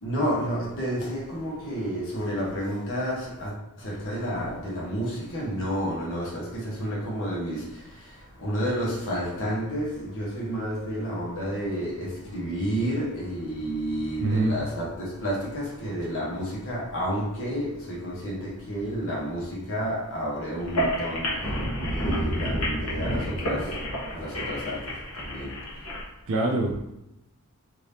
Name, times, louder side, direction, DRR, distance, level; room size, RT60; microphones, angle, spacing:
voice 1, 0.0-23.8 24.1-25.6, equal, 60° left, 1.1 m, -31 dB
voice 2, 14.2-14.5 26.3-27.0, right 2 dB, 65° right, 0.5 m, -25 dB
sound 1, 20.6-26.0, equal, 80° left, 1.0 m, -29 dB
3.4 x 2.8 x 2.8 m
head